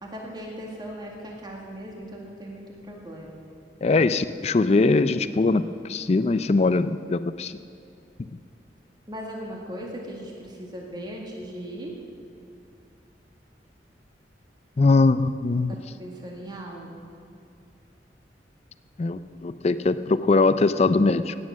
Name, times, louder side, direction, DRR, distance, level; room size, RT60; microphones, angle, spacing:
voice 1, 0.0-3.4 9.1-12.0 15.7-17.1, equal, 25° right, -1 dB, 1.8 m, -38 dB
voice 2, 3.8-7.5 14.8-15.8 19.0-21.4, left 3 dB, 35° left, 13 dB, 0.4 m, -21 dB
17.0 x 9.6 x 6.3 m, 2.5 s
head